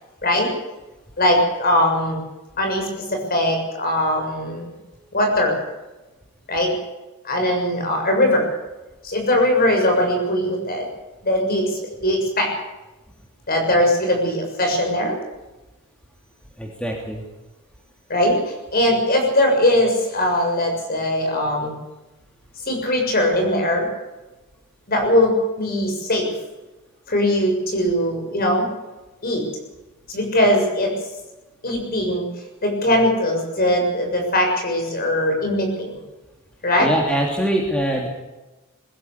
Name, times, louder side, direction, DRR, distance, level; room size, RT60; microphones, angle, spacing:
voice 1, 1.2-2.2 2.6-4.7 5.1-5.6 6.5-6.7 7.2-8.5 9.0-10.8 11.2-12.5 13.5-15.2 18.1-18.4 18.7-21.7 22.7-23.9 24.9-26.3 27.1-28.7 29.2-29.5 30.1-30.9 31.6-32.3 32.6-35.9 36.6-36.9, left 1 dB, 45° left, 2 dB, 6.9 m, -20 dB
voice 2, 16.6-17.2 36.8-38.1, right 1 dB, 5° left, 0 dB, 2.9 m, -23 dB
21.5 x 15.5 x 8.2 m, 1.1 s
head